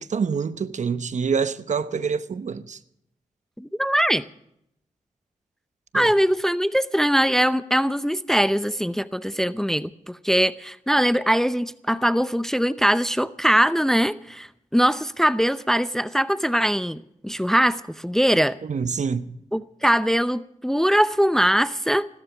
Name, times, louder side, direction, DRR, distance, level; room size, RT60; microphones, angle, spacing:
voice 1, 0.0-2.8 5.9-6.1 18.6-19.4, right 6 dB, 55° right, 1.0 m, -26 dB
voice 2, 3.6-4.3 5.9-18.6 19.5-22.1, equal, 5° left, 0.6 m, -22 dB
16.5 x 13.0 x 6.1 m
cardioid pair, 55°, 14 cm